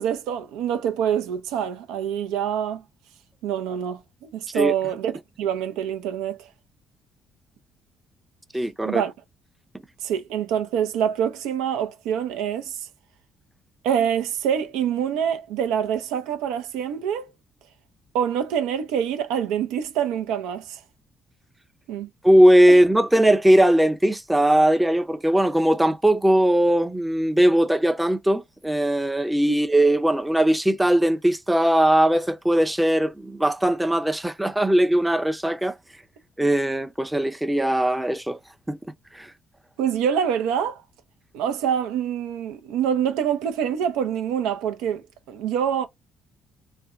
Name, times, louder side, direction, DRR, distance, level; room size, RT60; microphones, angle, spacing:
voice 1, 0.0-2.8 3.4-6.5 8.8-9.1 10.0-12.7 13.8-17.3 18.1-20.8 21.9-22.1 22.7-22.8 39.8-40.8 41.3-45.9, right 8 dB, 75° right, 0.5 m, -26 dB
voice 2, 8.5-9.0 22.2-35.7 36.4-38.4 38.7-38.8 39.1-39.3, right 1 dB, 10° right, 0.6 m, -19 dB
3.3 x 2.2 x 2.4 m
hypercardioid pair, 50°, 0 cm